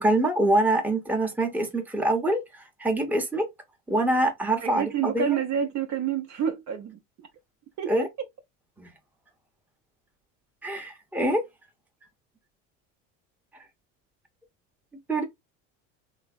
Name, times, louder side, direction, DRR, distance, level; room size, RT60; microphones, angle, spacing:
voice 1, 0.0-3.5 3.9-5.3 7.9-8.1 8.8-8.9 10.6-11.4 15.1-15.2, right 1 dB, 5° right, 0.8 m, -25 dB
voice 2, 4.6-7.0 7.8-8.1, right 8 dB, 50° right, 0.8 m, -28 dB
3.2 x 2.1 x 2.3 m
supercardioid pair, 90°, 38 cm